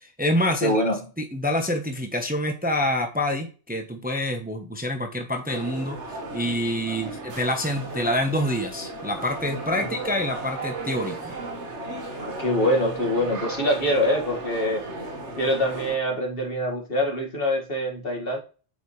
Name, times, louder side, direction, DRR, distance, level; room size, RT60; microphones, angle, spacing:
voice 1, 0.0-0.8 1.2-11.3, left 1 dB, 10° right, 4 dB, 1.0 m, -27 dB
voice 2, 0.6-1.0 6.9-7.1 9.8-9.9 12.2-14.8 15.4-18.4, left 1 dB, 55° left, 1 dB, 2.3 m, -24 dB
sound 1, 5.5-16.0, right 2 dB, 80° right, 1.9 m, -35 dB
8.7 x 5.4 x 3.2 m, 0.36 s
omnidirectional pair, 1.2 m